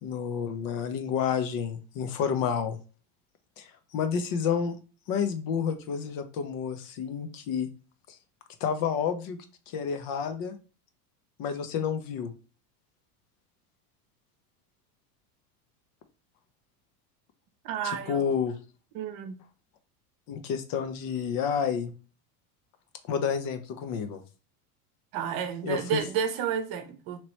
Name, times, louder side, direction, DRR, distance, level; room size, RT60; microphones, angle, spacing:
voice 1, 0.0-2.8 3.6-4.8 5.1-7.7 8.6-9.4 9.7-10.6 11.4-12.3 18.1-18.6 20.3-21.9 23.1-24.2 25.6-26.0, left 7 dB, 50° left, 0.7 m, -30 dB
voice 2, 17.6-18.2 18.9-19.4 25.1-27.2, right 7 dB, 50° right, 0.8 m, -31 dB
3.0 x 2.8 x 3.0 m
supercardioid pair, 105°, 46 cm